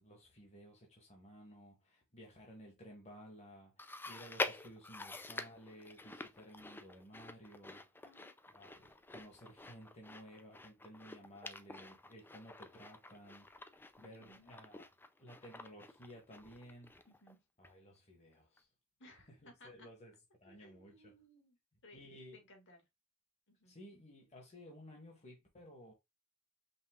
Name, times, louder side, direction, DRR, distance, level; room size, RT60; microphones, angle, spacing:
voice 1, 0.0-7.8 8.5-14.9 15.2-16.9 17.6-18.7 19.4-20.1 20.4-21.1 21.9-22.4 23.7-25.9, equal, 30° left, 1.3 m, -56 dB
Chewing mastication, 3.8-17.3 17.6-17.7 18.6-18.7, left 2 dB, 10° left, 0.4 m, -47 dB
voice 2, 14.0-14.5 17.1-17.4 19.0-19.9 20.5-21.6 21.8-22.0 22.3-22.8 23.5-23.7, left 1 dB, 55° left, 1.9 m, -61 dB
5.4 x 2.4 x 3.6 m
head